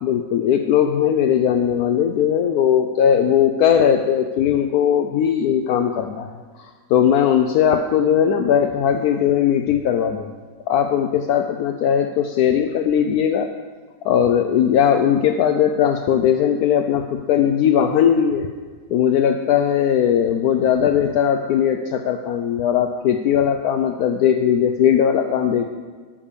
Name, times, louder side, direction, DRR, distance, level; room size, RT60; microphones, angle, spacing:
voice 1, 0.0-6.3 6.9-10.3 10.7-13.5 14.0-18.5 18.9-25.7, left 9 dB, 75° left, 6 dB, 1.1 m, -18 dB
12.5 x 5.2 x 6.7 m, 1.5 s
omnidirectional pair, 1.7 m